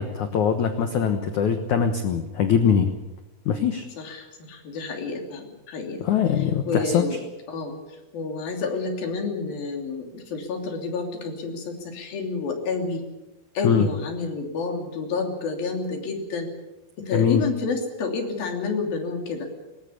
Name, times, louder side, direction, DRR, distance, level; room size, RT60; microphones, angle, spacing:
voice 1, 0.0-2.9 3.5-3.9 6.0-7.1 13.6-13.9 17.1-17.4, left 7 dB, 85° left, 7 dB, 1.7 m, -22 dB
voice 2, 4.0-6.0 6.7-7.2 7.5-7.8 8.1-13.0 13.5-16.5 17.0-19.5, left 4 dB, 55° left, 3 dB, 4.5 m, -29 dB
20.5 x 19.0 x 8.4 m, 1.0 s
omnidirectional pair, 5.5 m